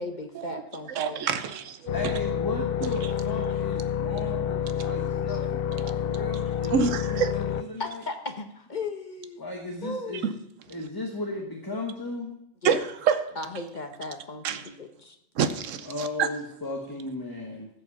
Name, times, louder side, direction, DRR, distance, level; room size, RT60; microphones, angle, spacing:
voice 1, 0.0-1.4 4.9-5.4 5.7-5.8 6.2-6.3 6.6-6.7 7.8-9.4 9.8-10.3 12.6-12.8 13.4-15.2, left 3 dB, 40° left, 7 dB, 1.0 m, -37 dB
voice 2, 0.9-1.9 6.7-7.4 10.2-10.3 12.6-13.3 14.4-14.6 15.4-16.3, right 7 dB, 85° right, 11 dB, 1.1 m, -26 dB
sound 1, 1.9-7.6, left 9 dB, 60° left, 0.7 m, -28 dB
voice 3, 1.9-8.0 9.4-10.3 10.7-12.3 15.8-17.7, left 2 dB, 20° left, 1 dB, 1.3 m, -35 dB
15.0 x 5.4 x 6.8 m, 0.76 s
omnidirectional pair, 1.3 m